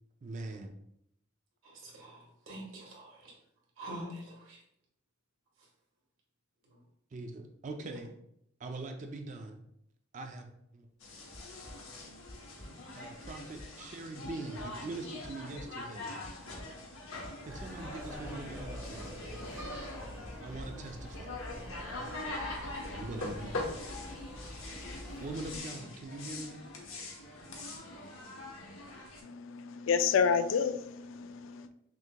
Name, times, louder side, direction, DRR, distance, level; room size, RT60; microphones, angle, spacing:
voice 1, 0.2-0.7 7.1-8.1 8.6-9.6 10.1-10.9 12.9-16.2 17.4-19.1 20.4-21.4 22.9-23.8 25.2-26.6, right 2 dB, 40° right, 5 dB, 0.4 m, -42 dB
voice 2, 1.6-3.2 3.8-4.6, right 1 dB, 75° right, -3 dB, 1.4 m, -45 dB
sound 1, 11.0-29.2, left 2 dB, 80° left, 0.9 m, -43 dB
sound 2, 11.3-11.8 12.3-12.7 13.2-13.3 13.6-13.7 14.2-14.3 14.6-14.7 15.2-15.7 16.2-16.7 17.2-17.7 18.2-18.6 19.2-19.3 19.6-19.8 20.2-20.7, equal, 15° left, 0.7 m, -47 dB
sound 3, 17.4-25.6, equal, 15° right, 1.0 m, -45 dB
voice 3, 29.2-31.7, left 6 dB, 65° left, 11 dB, 0.3 m, -29 dB
6.0 x 2.8 x 2.2 m, 0.76 s
head